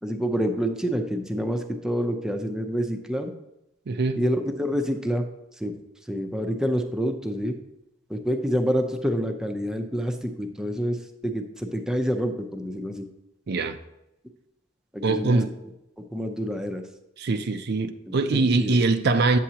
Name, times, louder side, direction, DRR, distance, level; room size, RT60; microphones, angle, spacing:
voice 1, 0.0-3.3 4.2-5.2 5.6-5.7 6.1-7.6 8.1-11.0 11.2-13.1 14.9-15.4 16.1-16.8 18.1-18.8, equal, 5° right, 0.6 m, -27 dB
voice 2, 3.9-4.2 13.5-13.8 15.0-15.5 17.2-19.4, right 3 dB, 55° right, 0.5 m, -23 dB
9.0 x 7.5 x 2.9 m
head